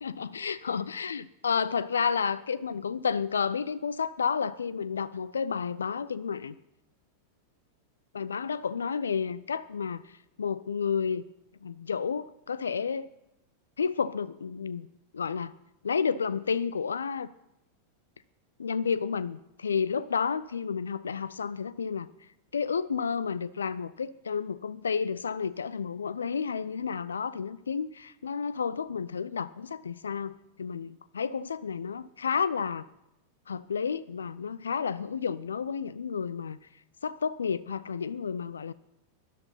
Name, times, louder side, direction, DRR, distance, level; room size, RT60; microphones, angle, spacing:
voice 1, 0.0-6.5 8.1-10.0 10.4-11.2 11.6-13.1 13.8-14.9 15.1-15.5 15.8-17.3 18.6-22.1 22.5-32.9 33.5-36.6 37.0-38.7, left 6 dB, 70° left, 18 dB, 0.4 m, -31 dB
12.5 x 11.0 x 5.7 m, 0.88 s
figure-of-eight pair, 90°, 0 cm